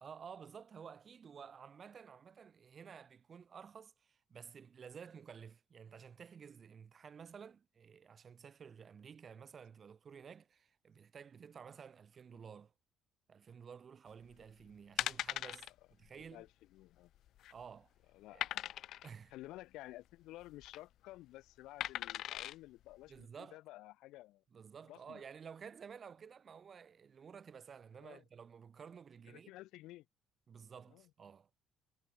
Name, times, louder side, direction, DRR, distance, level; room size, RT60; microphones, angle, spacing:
voice 1, 0.0-12.7 13.3-16.4 17.5-17.9 18.3-18.4 19.0-19.3 23.1-23.6 24.5-29.5 30.5-31.6, right 7 dB, 30° right, 1.2 m, -53 dB
sound 1, 14.3-14.5 15.0-15.7 16.1-16.2 16.5-16.6 17.2-17.6 18.4-19.1 20.4-20.8 21.8-22.6 23.2-23.3, left 13 dB, 60° left, 0.6 m, -39 dB
voice 2, 16.3-17.1 18.1-18.6 19.3-24.4 24.9-25.2 28.0-28.2 29.3-30.1 30.9-31.1, left 17 dB, 85° left, 1.2 m, -53 dB
cardioid pair, 170°, 0 cm